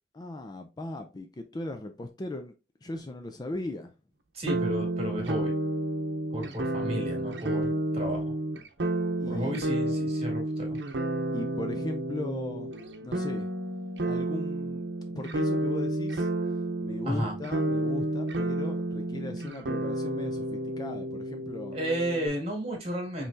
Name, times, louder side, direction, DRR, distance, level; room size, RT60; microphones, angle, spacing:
voice 1, 0.1-2.5 2.8-3.9 9.2-9.7 11.3-12.7 13.0-13.5 14.0-14.9 15.1-16.3 16.8-21.8, left 2 dB, 25° left, 0.4 m, -38 dB
voice 2, 4.3-5.5 6.3-8.3 9.3-10.8 17.1-17.3 21.7-23.3, right 1 dB, 35° right, 2.0 m, -33 dB
sound 1, 4.5-22.3, right 1 dB, 80° right, 0.7 m, -31 dB
5.4 x 3.1 x 2.7 m
head